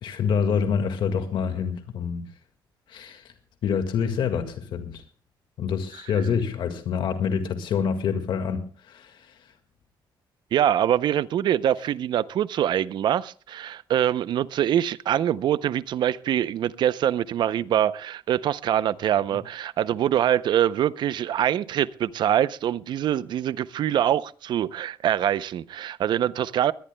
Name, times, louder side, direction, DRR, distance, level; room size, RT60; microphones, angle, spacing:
voice 1, 0.0-2.3 2.9-3.3 3.6-5.0 5.6-9.3, left 6 dB, 70° left, 1.8 m, -26 dB
voice 2, 10.5-26.7, right 10 dB, 65° right, 0.6 m, -24 dB
21.5 x 18.5 x 2.2 m
cardioid pair, 170°, 8 cm